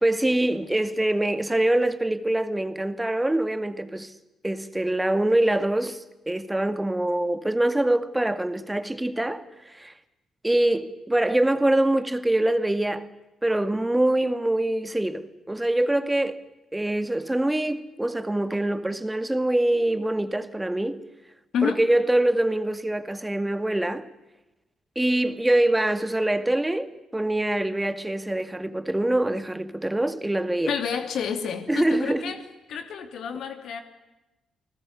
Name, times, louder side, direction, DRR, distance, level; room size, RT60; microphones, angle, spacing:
voice 1, 0.0-4.1 4.4-9.9 10.4-13.1 13.4-16.4 16.7-21.0 21.6-24.1 25.0-26.9 27.1-30.7 31.7-32.2, right 1 dB, 10° right, 2.2 m, -24 dB
voice 2, 30.7-32.4 32.7-33.8, left 7 dB, 55° left, 3.0 m, -29 dB
29.5 x 19.5 x 9.7 m
figure-of-eight pair, 40°, 0 cm